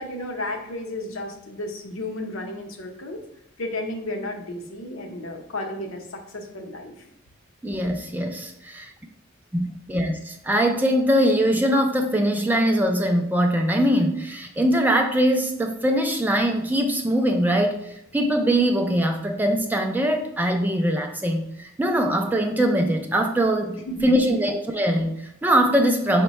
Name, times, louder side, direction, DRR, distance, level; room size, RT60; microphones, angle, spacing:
voice 1, 0.0-3.2 3.6-6.9 23.7-24.1, left 1 dB, 70° left, 3 dB, 0.7 m, -33 dB
voice 2, 7.6-8.8 9.5-26.2, equal, 10° right, 3 dB, 0.3 m, -22 dB
5.4 x 2.2 x 4.0 m, 0.80 s
head